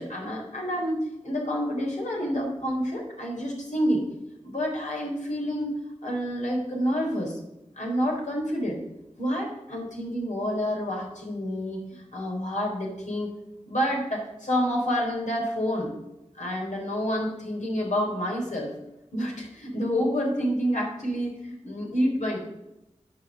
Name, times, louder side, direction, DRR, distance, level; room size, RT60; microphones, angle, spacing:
voice 1, 0.0-4.0 4.4-5.7 6.0-7.4 7.8-8.8 9.2-13.4 13.7-15.9 16.4-18.7 19.1-22.4, equal, 80° left, -2 dB, 3.6 m, -28 dB
10.0 x 6.0 x 7.3 m, 0.93 s
cardioid pair, 40°, 12 cm